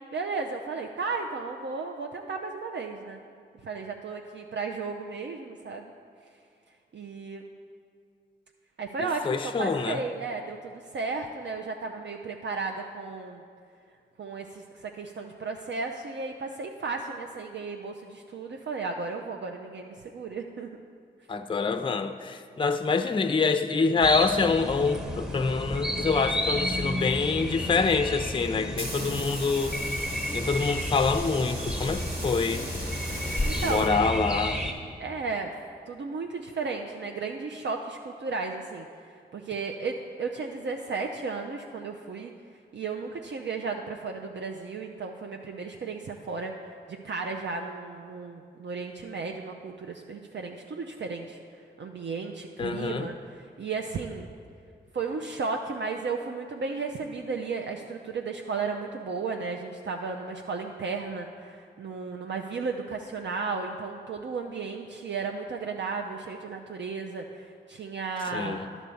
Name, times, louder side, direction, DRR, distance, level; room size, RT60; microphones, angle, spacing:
voice 1, 0.1-3.2 3.6-5.8 6.9-7.4 8.8-13.4 14.2-20.8 29.0-29.3 33.4-33.9 35.0-35.5 35.9-38.9 39.3-42.3 42.7-51.4 51.8-54.3 54.9-68.6, right 4 dB, 65° right, 2 dB, 0.5 m, -34 dB
voice 2, 9.0-10.0 21.3-29.8 30.3-32.7 33.6-34.6 52.6-53.1 68.3-68.7, left 4 dB, 25° left, 8 dB, 0.4 m, -26 dB
sound 1, 24.0-34.7, left 1 dB, 5° right, 1.1 m, -31 dB
sound 2, 28.4-34.4, right 1 dB, 50° right, 1.7 m, -39 dB
10.5 x 4.2 x 6.9 m, 2.2 s
cardioid pair, 45°, 20 cm